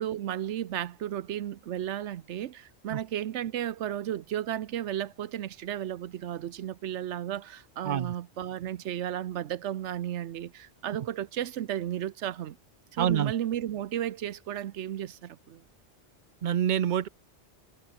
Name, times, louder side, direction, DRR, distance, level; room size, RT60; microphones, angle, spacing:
voice 1, 0.0-12.6 12.9-15.6, right 11 dB, 90° right, 1.0 m, -34 dB
voice 2, 13.0-13.3 16.4-17.1, right 9 dB, 50° right, 0.6 m, -26 dB
omnidirectional pair, 1.2 m